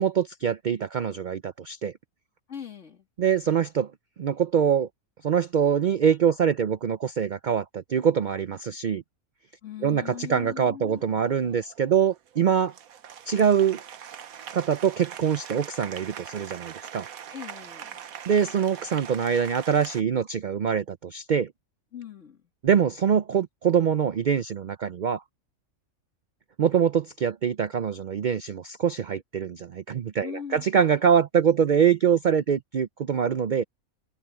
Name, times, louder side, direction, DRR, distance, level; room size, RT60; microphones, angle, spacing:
voice 1, 0.0-1.9 3.2-3.9 4.2-4.9 5.2-9.0 9.8-12.7 13.3-13.8 14.5-17.1 18.3-21.5 22.6-25.2 26.6-33.6, right 7 dB, 60° right, 0.5 m, -24 dB
voice 2, 2.5-3.1 9.6-11.0 17.3-18.0 21.9-22.4 30.2-30.6, left 8 dB, 55° left, 2.5 m, -40 dB
Applause, 10.9-20.0, right 9 dB, 85° right, 1.4 m, -42 dB
omnidirectional pair, 1.5 m